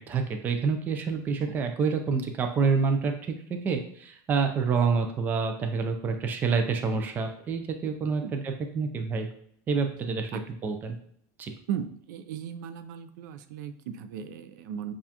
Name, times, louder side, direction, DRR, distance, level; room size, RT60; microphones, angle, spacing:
voice 1, 0.1-3.1 3.6-9.3 9.7-11.0 11.4-11.5, right 5 dB, 20° right, 5 dB, 0.4 m, -27 dB
voice 2, 11.7-14.9, right 9 dB, 90° right, 10 dB, 0.5 m, -36 dB
7.0 x 2.4 x 2.8 m, 0.66 s
cardioid pair, 175°, 10 cm